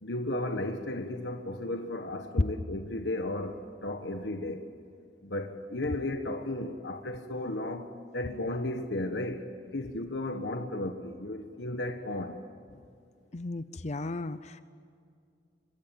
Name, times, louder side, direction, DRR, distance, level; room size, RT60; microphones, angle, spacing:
voice 1, 0.0-4.7 5.2-9.4 9.7-12.4, left 1 dB, 70° left, 5 dB, 1.4 m, -34 dB
voice 2, 13.3-14.6, left 2 dB, 40° left, 13 dB, 0.7 m, -36 dB
26.5 x 23.0 x 9.2 m, 2.3 s
head